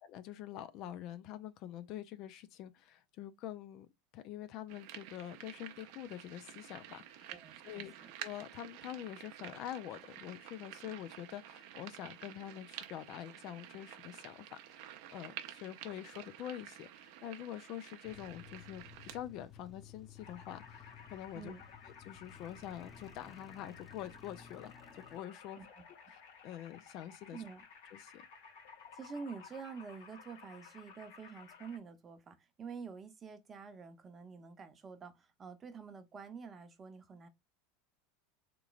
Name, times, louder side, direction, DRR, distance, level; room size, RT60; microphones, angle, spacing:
voice 1, 0.0-3.9 4.1-7.3 7.6-21.5 22.1-25.6 26.1-27.4 27.9-28.3, left 11 dB, 50° left, 0.4 m, -46 dB
sound 1, 4.7-19.2, right 12 dB, 60° right, 0.6 m, -50 dB
voice 2, 7.3-8.1 21.3-21.6 25.6-25.8 27.3-27.6 28.9-37.3, right 5 dB, 30° right, 0.8 m, -48 dB
sound 2, 18.0-25.2, left 7 dB, 10° left, 0.9 m, -56 dB
sound 3, 20.2-31.8, left 6 dB, 70° left, 1.4 m, -56 dB
3.7 x 3.0 x 2.4 m
hypercardioid pair, 85°, 0 cm